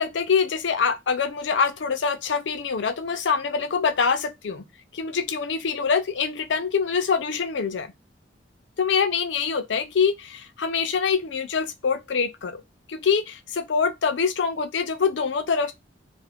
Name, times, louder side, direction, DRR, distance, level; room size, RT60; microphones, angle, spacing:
voice 1, 0.0-4.6 4.9-7.9 8.8-12.6 12.9-15.7, left 5 dB, 90° left, 0.5 m, -24 dB
2.4 x 2.1 x 3.3 m
head